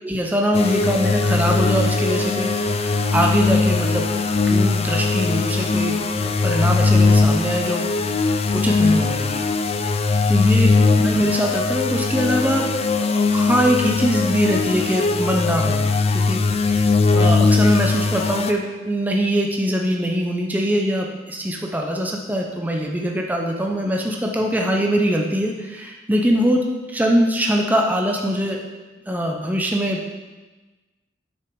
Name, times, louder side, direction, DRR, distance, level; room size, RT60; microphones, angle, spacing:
voice 1, 0.0-6.0 6.4-7.8 8.5-9.5 10.3-10.7 11.0-12.7 13.1-16.9 17.1-26.6 26.9-28.6 29.1-30.0, equal, 10° right, 0 dB, 0.7 m, -22 dB
sound 1, 0.5-18.5, left 3 dB, 35° left, 0.5 m, -20 dB
8.8 x 6.1 x 4.7 m, 1.2 s
head